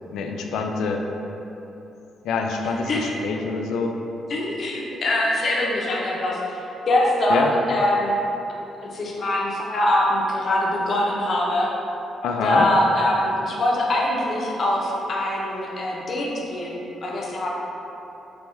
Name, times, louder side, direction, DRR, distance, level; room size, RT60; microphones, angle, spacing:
voice 1, 0.1-1.0 2.2-4.0 7.3-7.5 12.2-12.7, left 4 dB, 90° left, 3 dB, 0.3 m, -25 dB
voice 2, 4.3-8.2 8.8-11.7 12.4-17.5, left 1 dB, 45° left, -3 dB, 0.6 m, -23 dB
3.4 x 3.4 x 3.0 m, 3.0 s
cardioid pair, 135°, 0 cm